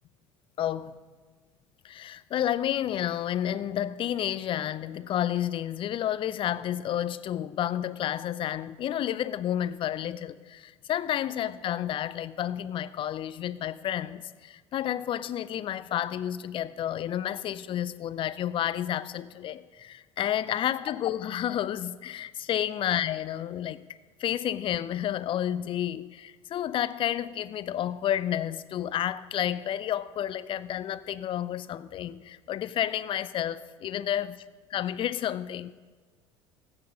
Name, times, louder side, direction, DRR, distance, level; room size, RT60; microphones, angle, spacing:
voice 1, 0.6-1.0 1.8-23.8 24.2-34.4 34.7-35.7, left 11 dB, 35° left, 17 dB, 0.5 m, -30 dB
14.5 x 8.8 x 5.4 m, 1.5 s
figure-of-eight pair, 65°, 16 cm